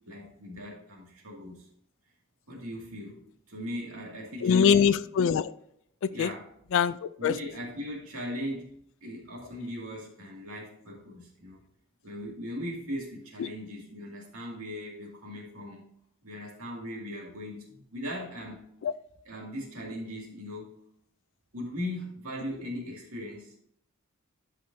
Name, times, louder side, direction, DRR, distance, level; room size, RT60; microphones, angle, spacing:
voice 1, 0.1-1.7 2.5-3.2 3.5-4.9 6.1-6.5 7.2-8.7 9.0-11.6 12.0-15.8 16.2-18.7 19.3-20.8 21.5-23.6, equal, 70° right, -2 dB, 2.3 m, -39 dB
voice 2, 4.4-5.5 6.2-6.3 6.7-7.3 13.4-13.5 18.8-18.9, left 7 dB, 60° left, 13 dB, 0.3 m, -23 dB
12.5 x 5.1 x 2.7 m, 0.71 s
head